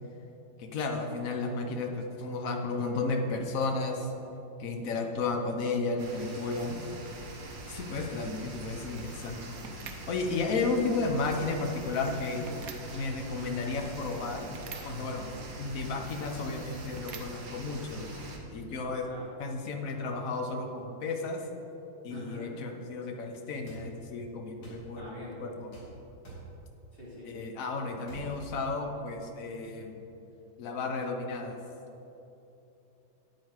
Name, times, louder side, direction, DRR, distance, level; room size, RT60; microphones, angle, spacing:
voice 1, 0.6-4.1 4.6-6.8 7.7-9.4 10.1-12.4 12.9-14.5 14.8-15.3 15.6-18.1 18.5-19.1 19.4-21.4 22.0-25.1 25.4-25.7 27.3-30.0 30.6-31.6, left 3 dB, 50° left, 3 dB, 1.3 m, -33 dB
sound 1, 6.0-18.4, right 2 dB, 75° right, 2.1 m, -45 dB
sound 2, 6.9-18.8, right 3 dB, 60° right, 1.1 m, -48 dB
voice 2, 22.1-22.5 24.9-25.4 26.9-27.3, left 2 dB, 30° left, -7 dB, 2.8 m, -44 dB
sound 3, 23.7-23.8 24.6-24.8 25.7-25.9 26.2-26.5 28.0-28.3, right 3 dB, 70° left, 3.5 m, -46 dB
9.5 x 9.1 x 4.8 m, 3.0 s
omnidirectional pair, 2.0 m